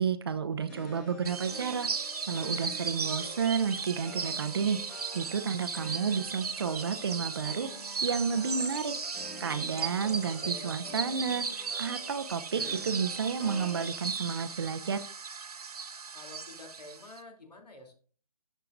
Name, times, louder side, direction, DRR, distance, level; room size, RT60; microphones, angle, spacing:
voice 1, 0.0-1.9 2.3-7.7 8.0-8.9 9.4-15.0, right 6 dB, 40° right, 11 dB, 0.7 m, -31 dB
sound 1, 0.7-13.9, left 1 dB, 5° left, 0.5 m, -48 dB
sound 2, 1.2-17.2, right 5 dB, 70° right, 1.0 m, -37 dB
voice 2, 9.8-10.8 16.1-17.9, left 2 dB, 80° left, 3 dB, 3.0 m, -49 dB
13.0 x 5.6 x 2.5 m, 0.41 s
figure-of-eight pair, 155°, 20 cm